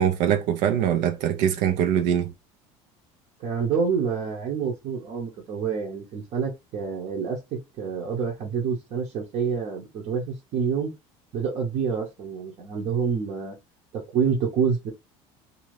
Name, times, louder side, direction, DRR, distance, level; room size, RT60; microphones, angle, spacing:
voice 1, 0.0-2.3, right 9 dB, 70° right, 0.5 m, -23 dB
voice 2, 3.4-10.9 11.3-13.6 13.9-14.9, right 6 dB, 50° right, 0.8 m, -27 dB
2.7 x 2.6 x 3.2 m
supercardioid pair, 95°, 15 cm